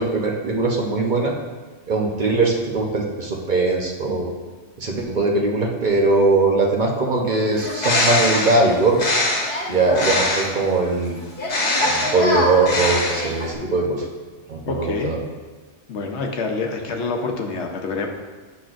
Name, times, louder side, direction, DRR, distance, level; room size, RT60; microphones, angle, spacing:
voice 1, 0.0-1.3 1.9-4.3 4.8-9.0 9.7-11.2 11.8-14.1 14.5-15.2, right 3 dB, 45° right, 0 dB, 0.9 m, -20 dB
Bird, 7.5-10.7 11.4-13.5, left 1 dB, 50° left, 1.2 m, -22 dB
voice 2, 14.7-15.1 15.9-18.1, left 4 dB, 75° left, 2 dB, 1.1 m, -26 dB
9.6 x 6.0 x 2.5 m, 1.3 s
omnidirectional pair, 1.2 m